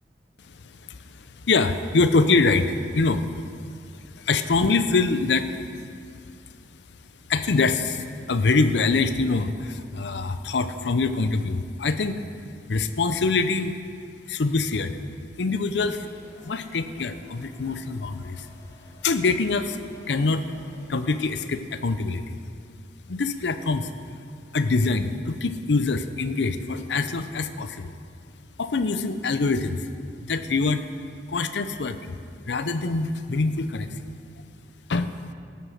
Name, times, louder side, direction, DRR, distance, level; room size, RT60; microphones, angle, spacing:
voice 1, 0.6-3.4 4.0-5.6 7.3-12.2 12.7-13.7 14.2-15.0 15.4-16.1 16.4-18.5 19.0-19.8 20.1-20.4 20.9-22.4 23.1-23.9 24.5-27.9 28.6-29.9 30.2-30.9 31.3-32.2 32.5-34.0 34.9-35.2, left 3 dB, 80° left, 10 dB, 0.6 m, -24 dB
sound 1, 15.8-21.3, left 1 dB, 15° left, 1.2 m, -52 dB
13.0 x 8.3 x 6.4 m, 2.3 s
head